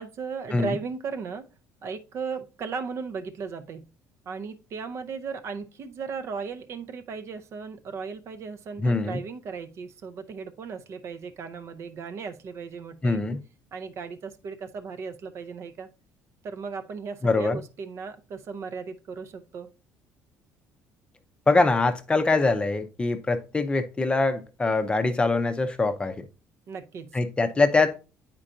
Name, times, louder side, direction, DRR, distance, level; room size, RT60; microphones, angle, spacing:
voice 1, 0.0-1.4 1.8-3.9 4.3-13.2 13.7-15.9 16.4-19.7 26.7-27.2, right 5 dB, 50° right, 0.6 m, -36 dB
voice 2, 8.8-9.2 13.0-13.4 17.2-17.6 21.5-26.2 27.1-27.9, left 3 dB, 15° left, 0.6 m, -23 dB
8.6 x 4.5 x 2.5 m
cardioid pair, 130°, 6 cm